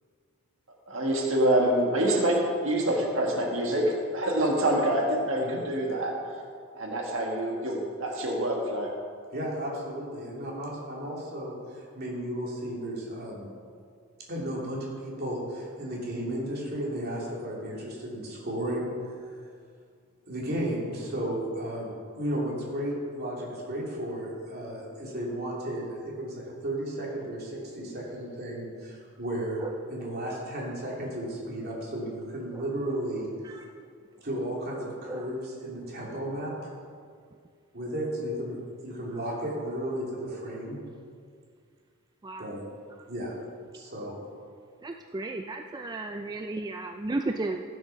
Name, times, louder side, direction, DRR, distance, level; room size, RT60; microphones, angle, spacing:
voice 1, 0.9-6.1 6.7-8.9, right 1 dB, 65° right, 0 dB, 1.7 m, -26 dB
voice 2, 9.3-13.5 14.3-18.9 19.2-19.3 20.3-29.6 29.9-33.3 34.2-36.7 37.7-40.8 42.4-42.6 43.1-43.4 43.7-44.1, right 1 dB, 50° right, -4 dB, 3.0 m, -34 dB
voice 3, 44.8-47.6, right 2 dB, 20° right, 4 dB, 0.4 m, -34 dB
15.0 x 6.7 x 5.9 m, 2.2 s
head